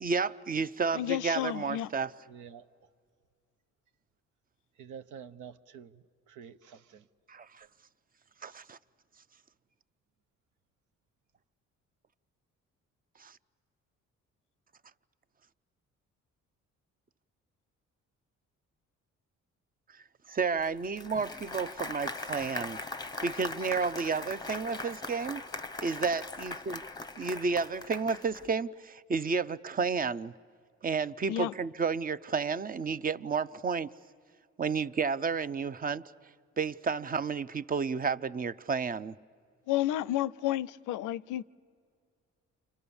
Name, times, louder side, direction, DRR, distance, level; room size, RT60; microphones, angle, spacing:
voice 1, 0.0-2.1 7.3-7.7 8.4-8.8 13.2-13.3 20.3-22.8 23.2-25.4 25.8-26.8 27.2-30.3 30.8-33.9 34.6-36.0 36.6-39.1, right 5 dB, 30° right, 0.6 m, -31 dB
voice 2, 0.9-1.9 31.3-31.5 39.7-41.4, left 13 dB, 85° left, 0.6 m, -31 dB
voice 3, 2.3-2.6 4.8-5.9 6.3-7.0, right 7 dB, 80° right, 0.9 m, -48 dB
Applause, 20.6-28.5, left 3 dB, 15° left, 0.8 m, -40 dB
30.0 x 25.5 x 7.1 m
cardioid pair, 90°, 30 cm